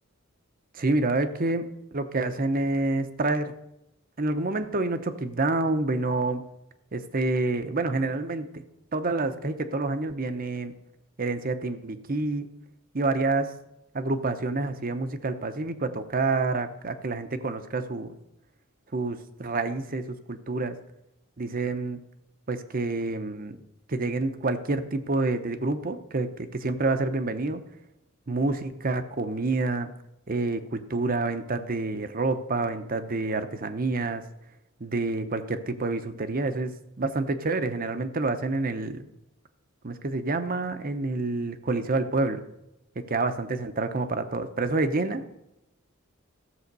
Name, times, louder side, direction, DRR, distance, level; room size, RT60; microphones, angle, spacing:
voice 1, 0.7-1.6 1.9-3.5 4.2-6.4 6.9-8.6 8.9-10.7 11.2-12.5 12.9-13.5 13.9-18.1 18.9-20.8 21.4-22.0 22.5-23.6 23.9-27.6 28.3-29.9 30.3-34.2 34.8-39.0 39.8-42.4 43.0-45.2, right 3 dB, 45° right, 9 dB, 0.8 m, -28 dB
14.5 x 7.1 x 5.4 m, 0.87 s
head